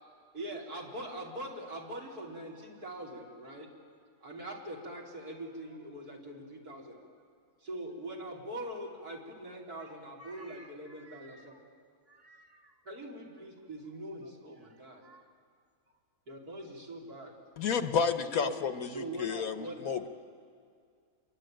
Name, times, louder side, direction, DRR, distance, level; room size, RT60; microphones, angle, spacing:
voice 1, 0.3-3.7 4.2-7.0 7.6-11.4 12.8-15.0 16.3-17.3 18.4-18.6 18.9-19.8, right 1 dB, 70° right, -2 dB, 4.3 m, -42 dB
voice 2, 5.3-6.0 6.9-7.1 9.3-9.4 9.8-11.8 12.1-12.8 13.3-13.5 14.2-15.4, right 1 dB, 10° left, 3 dB, 1.2 m, -59 dB
voice 3, 17.6-20.1, left 6 dB, 65° left, 8 dB, 1.4 m, -31 dB
28.0 x 22.5 x 9.1 m, 2.2 s
omnidirectional pair, 1.7 m